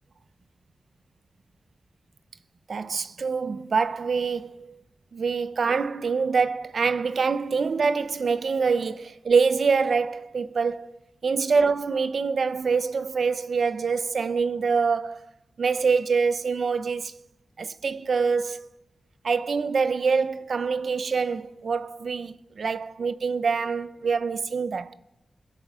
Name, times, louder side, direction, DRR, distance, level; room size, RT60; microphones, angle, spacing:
voice 1, 2.7-4.8 5.1-10.9 11.2-15.2 15.6-17.1 17.6-18.7 19.2-24.9, right 5 dB, 60° right, 0.5 m, -25 dB
21.0 x 8.2 x 5.0 m
wide cardioid pair, 160°, 0 cm